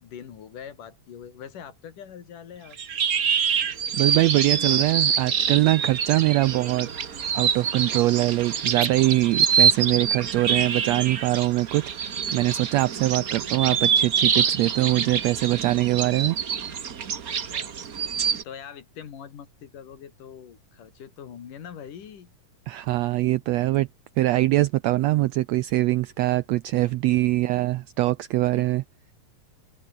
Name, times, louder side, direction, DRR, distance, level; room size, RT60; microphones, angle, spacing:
voice 1, 0.0-2.8 17.2-17.7 18.4-22.3 26.8-27.2 28.5-28.7, left 8 dB, 85° left, 4.1 m, -43 dB
sound 1, 2.7-18.4, right 7 dB, 55° right, 1.0 m, -25 dB
voice 2, 3.9-6.9 7.3-11.9 12.3-16.4 22.7-23.9 24.2-28.8, right 17 dB, 85° right, 1.5 m, -23 dB
open air
omnidirectional pair, 3.6 m